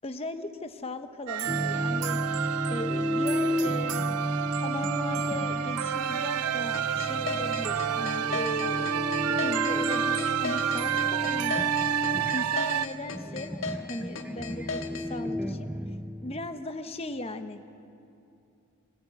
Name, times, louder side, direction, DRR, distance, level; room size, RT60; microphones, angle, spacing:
voice 1, 0.0-4.3 4.6-11.7 12.3-15.7 16.2-17.6, left 1 dB, 25° left, 8 dB, 0.8 m, -38 dB
sound 1, 1.3-12.9, right 9 dB, 85° right, 0.4 m, -30 dB
sound 2, 1.5-16.6, equal, 5° right, 0.4 m, -33 dB
sound 3, 6.7-15.1, left 4 dB, 65° left, 1.5 m, -36 dB
23.0 x 14.5 x 8.3 m, 2.7 s
head